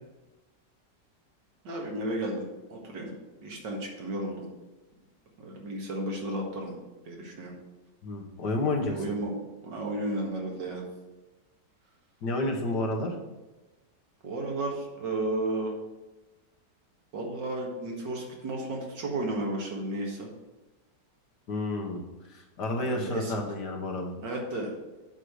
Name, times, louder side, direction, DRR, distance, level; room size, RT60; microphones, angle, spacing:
voice 1, 1.6-3.1 3.4-4.5 5.4-6.8 7.1-7.5 8.9-9.4 9.6-10.8 14.2-15.7 17.1-20.3 22.9-23.3 24.2-24.7, right 1 dB, 85° right, -1 dB, 2.4 m, -33 dB
voice 2, 8.0-9.0 12.2-13.2 21.5-22.0 22.3-24.1, left 2 dB, 70° left, 1 dB, 1.9 m, -30 dB
7.6 x 4.9 x 6.3 m, 1.1 s
omnidirectional pair, 1.9 m